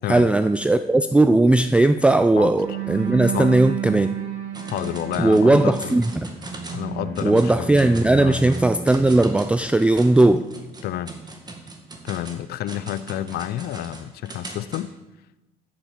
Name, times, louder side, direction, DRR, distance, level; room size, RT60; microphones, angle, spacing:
voice 1, 0.1-4.1 5.2-6.3 7.2-10.4, right 2 dB, 5° right, 10 dB, 0.4 m, -18 dB
sound 1, 2.6-9.2, right 7 dB, 45° right, 3.2 m, -31 dB
sound 2, 4.5-6.9 7.1-7.5 7.8-14.8, right 2 dB, 25° right, 1.9 m, -40 dB
voice 2, 4.7-5.9 6.7-7.7 8.2-8.4 10.8-11.2 12.0-14.9, left 12 dB, 70° left, 17 dB, 0.5 m, -29 dB
9.0 x 8.4 x 7.2 m, 1.1 s
cardioid pair, 110°, 17 cm